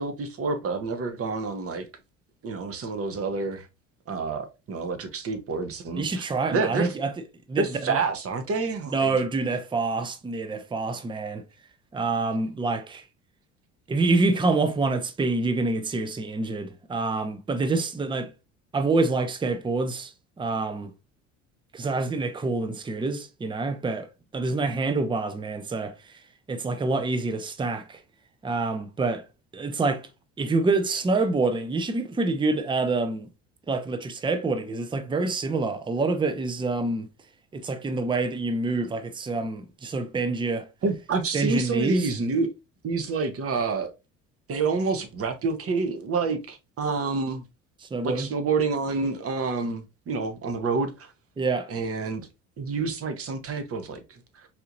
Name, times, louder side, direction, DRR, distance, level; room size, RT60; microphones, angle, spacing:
voice 1, 0.0-1.9 2.4-3.7 4.1-6.2 6.5-6.9 7.6-9.1 40.8-42.5 42.8-43.9 44.5-47.4 48.0-51.1 51.7-52.3 52.6-54.5, right 4 dB, 40° right, 0.9 m, -28 dB
voice 2, 6.0-8.0 8.9-11.4 11.9-13.0 13.9-18.3 18.7-20.9 21.7-24.1 24.3-26.2 26.5-28.0 28.4-29.3 29.5-30.1 30.4-33.3 33.7-37.1 37.5-40.7 41.3-42.1 47.9-48.3 51.4-51.7, right 3 dB, 15° right, 0.6 m, -27 dB
4.2 x 2.8 x 2.5 m
hypercardioid pair, 70°, 35 cm